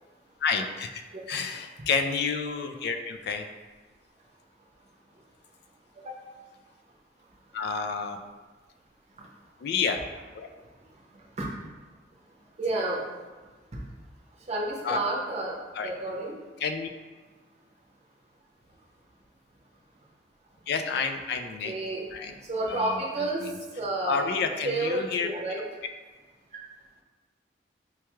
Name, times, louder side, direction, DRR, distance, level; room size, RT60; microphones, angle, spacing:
voice 1, 0.4-1.0 1.3-3.4 7.5-8.2 9.6-10.0 10.3-10.5 14.8-15.0 15.7-15.9 16.6-16.9 20.7-21.7 22.1-22.4 22.7-23.6 24.1-25.6, left 5 dB, 60° left, 6 dB, 0.3 m, -30 dB
voice 2, 12.6-13.0 14.5-15.6 15.8-16.4 21.6-22.0 22.4-23.4 23.8-24.2 24.6-25.6, right 2 dB, 40° right, -3 dB, 0.7 m, -30 dB
4.5 x 2.3 x 3.0 m, 1.3 s
head